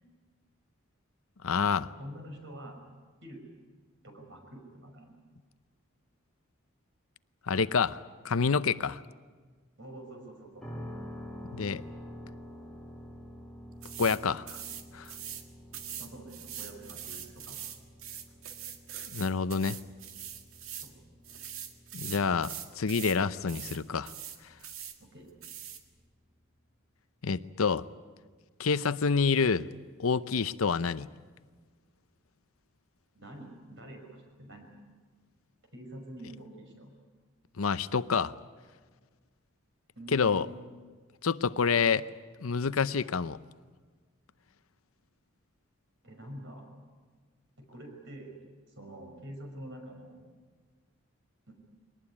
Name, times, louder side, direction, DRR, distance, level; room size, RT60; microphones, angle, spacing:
voice 1, 1.4-1.9 7.5-8.0 8.2-9.0 11.5-11.8 14.0-14.5 14.9-15.1 19.1-19.8 21.9-24.1 27.2-27.8 28.6-29.7 30.0-31.1 37.6-38.3 40.1-40.5 41.2-42.1 42.4-43.4, left 5 dB, 85° left, 14 dB, 0.7 m, -27 dB
voice 2, 2.0-2.8 3.2-3.4 4.0-5.1 9.8-10.7 16.0-17.6 20.8-20.9 25.0-25.3 33.1-34.7 35.7-36.9 40.0-40.7 46.0-46.7 47.7-48.4 48.7-50.2 51.5-51.6, right 1 dB, 60° right, 3 dB, 5.7 m, -46 dB
sound 1, 10.6-26.5, equal, 5° left, 1.6 m, -49 dB
sound 2, 13.8-14.2 14.5-15.4 15.7-20.9 21.2-23.2 23.5-23.8 24.0-25.0 25.4-25.8, right 9 dB, 80° right, 1.8 m, -42 dB
22.5 x 19.0 x 9.8 m, 1.5 s
head